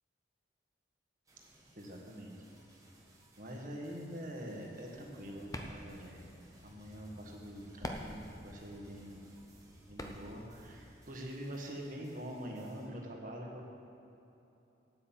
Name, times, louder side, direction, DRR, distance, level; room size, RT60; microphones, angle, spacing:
sound 1, 1.2-12.9, right 2 dB, 20° right, 1.6 m, -64 dB
voice 1, 1.7-2.3 3.4-6.3 6.6-9.2 9.9-13.7, equal, 45° right, 0 dB, 1.6 m, -45 dB
sound 2, 4.9-10.8, left 1 dB, 20° left, 0.7 m, -48 dB
8.9 x 8.6 x 7.6 m, 2.9 s
head